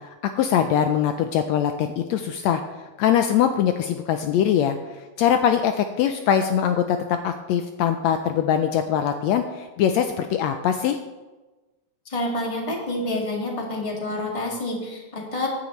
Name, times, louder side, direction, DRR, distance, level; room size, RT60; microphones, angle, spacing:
voice 1, 0.2-2.6 3.0-4.8 5.2-7.0 7.2-11.0, left 9 dB, 80° left, 7 dB, 1.7 m, -22 dB
voice 2, 12.1-15.5, left 1 dB, 15° left, -2 dB, 1.7 m, -28 dB
15.0 x 10.0 x 3.1 m, 1.2 s
omnidirectional pair, 3.3 m